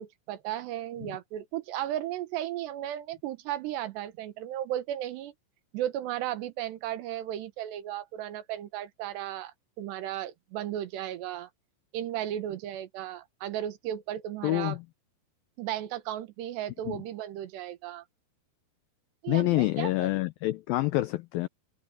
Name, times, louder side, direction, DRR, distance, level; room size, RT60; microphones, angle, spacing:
voice 1, 0.0-5.3 5.7-11.5 11.9-14.8 15.6-18.0 19.2-20.1, right 12 dB, 80° right, 3.4 m, -35 dB
voice 2, 14.4-14.8 16.9-17.0 19.3-21.5, left 18 dB, 85° left, 2.0 m, -27 dB
omnidirectional pair, 4.9 m